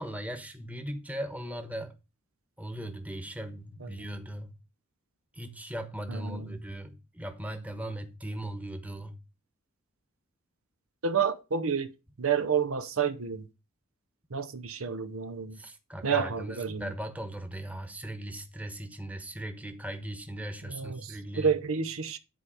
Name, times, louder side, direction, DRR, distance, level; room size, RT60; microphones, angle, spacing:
voice 1, 0.0-1.9 2.6-4.5 5.4-9.2 15.6-21.5, right 1 dB, 5° right, 1.2 m, -38 dB
voice 2, 6.1-6.6 11.0-11.9 12.2-13.5 14.3-15.6 16.0-16.9 20.6-22.2, right 6 dB, 75° right, 0.8 m, -30 dB
10.5 x 4.7 x 5.0 m
head